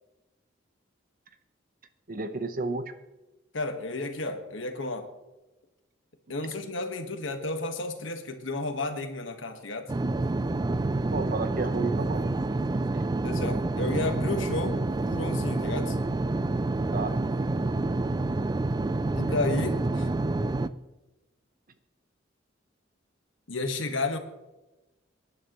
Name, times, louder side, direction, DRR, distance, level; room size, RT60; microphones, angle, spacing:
voice 1, 2.1-2.8 11.1-12.2 16.9-17.2, right 3 dB, 50° right, 9 dB, 1.0 m, -31 dB
voice 2, 3.5-5.1 6.3-9.9 13.2-16.0 19.1-20.1 23.5-24.2, left 2 dB, 80° left, 6 dB, 1.5 m, -32 dB
sound 1, 9.9-20.7, right 2 dB, 20° right, 0.4 m, -28 dB
24.5 x 10.5 x 3.1 m, 1.0 s
head